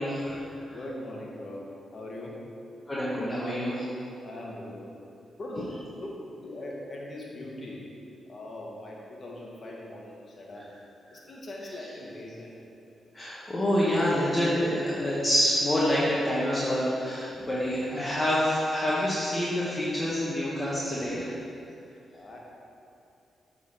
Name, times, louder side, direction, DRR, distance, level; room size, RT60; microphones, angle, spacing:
voice 1, 0.0-0.8 2.9-3.9 13.1-21.3, equal, 30° left, -8 dB, 1.7 m, -27 dB
voice 2, 0.7-2.5 4.2-5.0 5.4-7.9 8.3-10.8 11.1-12.6 22.1-22.4, left 1 dB, 50° left, -2 dB, 1.7 m, -41 dB
8.3 x 4.1 x 5.9 m, 2.6 s
supercardioid pair, 45°, 0 cm